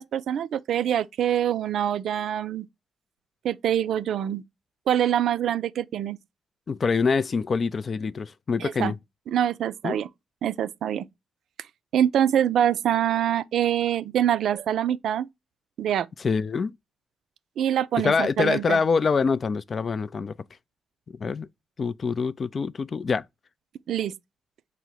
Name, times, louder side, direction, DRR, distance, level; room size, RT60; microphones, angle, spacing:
voice 1, 0.0-2.7 3.4-4.4 4.9-6.2 8.6-8.9 9.3-10.1 10.4-11.1 11.9-15.3 15.8-16.1 17.6-18.8 23.9-24.1, right 10 dB, 75° right, 0.3 m, -25 dB
voice 2, 6.7-8.9 9.8-10.0 16.2-16.7 18.0-20.3 21.2-21.5 21.8-23.2, left 5 dB, 50° left, 0.3 m, -25 dB
5.5 x 2.0 x 4.5 m
hypercardioid pair, 40°, 0 cm